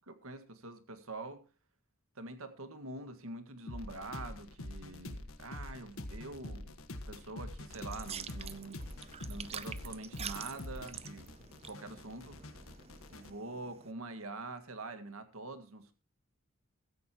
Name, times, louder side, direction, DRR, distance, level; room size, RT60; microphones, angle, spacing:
voice 1, 0.1-1.4 2.2-6.8 7.1-8.8 9.2-11.3 11.6-12.5 13.1-15.9, right 2 dB, 80° right, 1.9 m, -45 dB
sound 1, 3.7-13.3, left 1 dB, 75° left, 1.5 m, -45 dB
sound 2, 7.7-13.9, right 8 dB, 30° right, 0.6 m, -47 dB
16.0 x 13.5 x 3.0 m
head